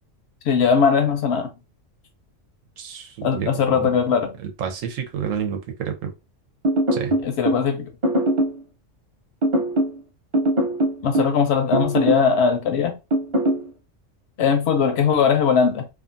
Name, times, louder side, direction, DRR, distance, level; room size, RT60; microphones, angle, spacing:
voice 1, 0.5-1.5 3.2-4.3 7.2-7.9 11.0-13.0 14.4-15.9, left 6 dB, 65° left, 0.8 m, -20 dB
voice 2, 2.8-4.0 4.4-6.1 6.9-7.1, right 7 dB, 85° right, 1.0 m, -29 dB
sound 1, 6.6-7.6 8.0-8.6 9.4-10.0 10.3-11.4 11.7-12.3 13.1-13.6, right 1 dB, 35° right, 0.5 m, -21 dB
2.5 x 2.4 x 2.5 m
omnidirectional pair, 1.3 m